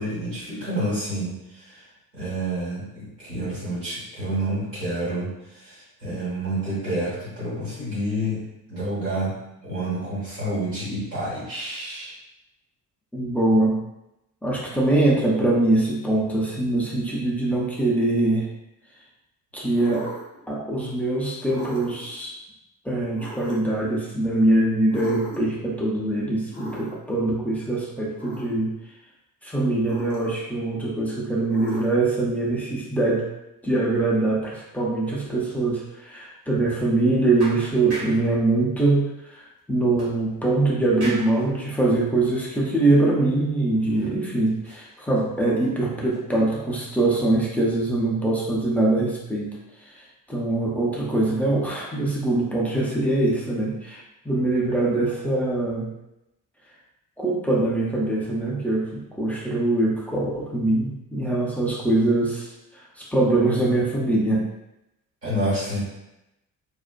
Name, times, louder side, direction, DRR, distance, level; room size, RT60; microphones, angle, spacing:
voice 1, 0.0-1.8 2.1-9.4 9.6-12.1 65.2-65.8, right 1 dB, 90° right, -12 dB, 1.1 m, -29 dB
voice 2, 13.1-13.8 14.4-18.5 19.5-20.1 20.5-22.4 22.8-28.7 29.4-33.2 33.6-49.6 49.9-50.0 50.3-55.9 57.2-64.5, right 2 dB, 5° left, -5 dB, 0.3 m, -23 dB
sound 1, 19.8-20.4 21.4-22.1 23.1-23.8 24.9-25.6 26.5-27.2 28.2-28.6 29.8-30.5 31.5-32.1, left 1 dB, 75° left, 0.7 m, -38 dB
sound 2, 33.8-34.2 34.4-34.5 35.0-35.2 35.6-35.8 36.2-36.3 37.0-37.1 37.4-38.3 40.0-40.6 41.0-41.4 42.1-42.3 42.8-42.9 43.7-44.2 44.5-45.7 46.1-46.4, right 1 dB, 55° right, 1.1 m, -39 dB
2.5 x 2.0 x 2.4 m, 0.89 s
figure-of-eight pair, 45°, 48 cm